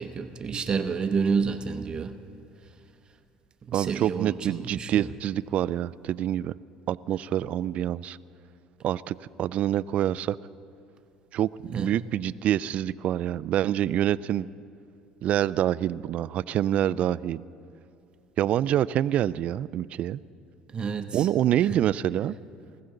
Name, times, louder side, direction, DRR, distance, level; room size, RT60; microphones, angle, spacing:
voice 1, 0.0-2.1 3.7-5.1 11.7-12.0 20.7-21.3 21.7-21.8, right 5 dB, 35° right, 8 dB, 0.8 m, -29 dB
voice 2, 3.7-6.5 6.9-8.2 8.8-10.4 11.3-14.5 15.2-17.4 18.4-20.2 21.1-22.4, right 11 dB, 55° right, 19 dB, 0.3 m, -26 dB
20.0 x 15.5 x 3.9 m, 2.5 s
supercardioid pair, 90°, 3 cm